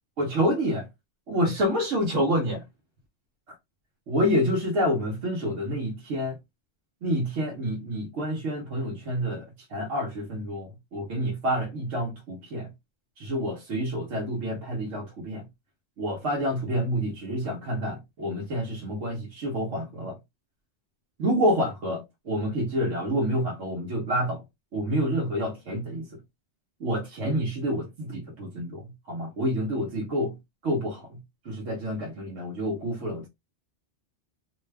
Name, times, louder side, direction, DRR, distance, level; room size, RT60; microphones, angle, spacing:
voice 1, 0.2-0.9 1.3-2.6 4.1-6.4 7.0-12.7 13.2-15.4 16.0-20.2 21.2-24.4 24.7-26.1 26.8-30.3 30.6-31.2 31.5-33.3, equal, 85° right, 1.1 m, -28 dB
2.6 x 2.2 x 3.2 m
omnidirectional pair, 1.2 m